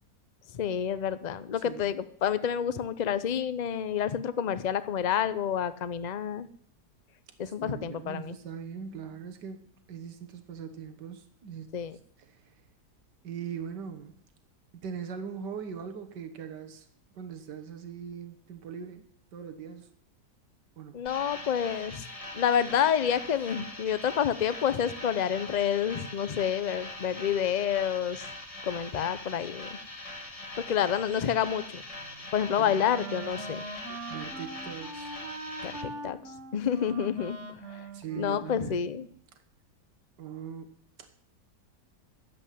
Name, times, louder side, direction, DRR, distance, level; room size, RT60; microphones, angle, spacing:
voice 1, 0.5-6.5 7.4-8.4 11.7-11.9 20.9-22.0 22.3-28.2 28.6-29.8 30.7-31.8 32.3-33.6 35.6-36.2 36.5-37.4 37.7-37.8 38.2-39.1, left 8 dB, 75° left, 13 dB, 0.4 m, -28 dB
voice 2, 7.4-11.7 12.2-12.5 13.2-14.2 14.8-16.9 17.1-19.0 19.3-19.9 20.8-21.0 23.4-23.5 32.6-32.8 34.1-35.1 37.9-38.9 40.2-41.2, right 7 dB, 85° right, 6 dB, 1.8 m, -41 dB
sound 1, 21.1-35.8, left 2 dB, 20° left, 1.6 m, -42 dB
Wind instrument woodwind instrument, 31.9-39.1, right 2 dB, 50° right, 1.4 m, -42 dB
10.5 x 7.7 x 9.9 m, 0.62 s
omnidirectional pair, 1.8 m